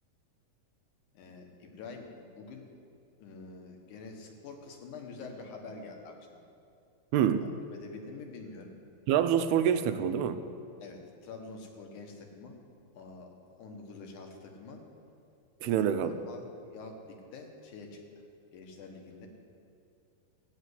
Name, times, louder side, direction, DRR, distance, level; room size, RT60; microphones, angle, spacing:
voice 1, 1.1-2.7 3.2-6.4 7.4-8.7 10.8-12.6 12.9-14.8 15.6-18.0 18.5-19.3, left 4 dB, 60° left, 3 dB, 2.4 m, -46 dB
voice 2, 7.1-7.4 9.1-10.4 15.6-16.1, right 9 dB, 85° right, 9 dB, 2.6 m, -26 dB
15.0 x 9.1 x 8.1 m, 2.5 s
omnidirectional pair, 4.6 m